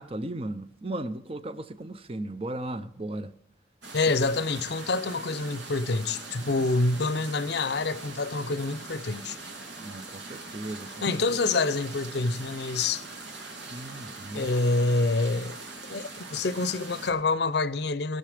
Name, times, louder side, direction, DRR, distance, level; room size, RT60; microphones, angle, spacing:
voice 1, 0.0-3.3 9.8-10.9 11.3-11.4 13.7-14.5, right 1 dB, 30° right, 0.7 m, -36 dB
sound 1, 3.8-17.1, right 3 dB, 75° right, 2.7 m, -42 dB
voice 2, 3.9-9.4 11.0-13.0 14.3-15.6 15.9-18.2, left 3 dB, 60° left, 0.6 m, -27 dB
20.5 x 6.8 x 5.0 m
head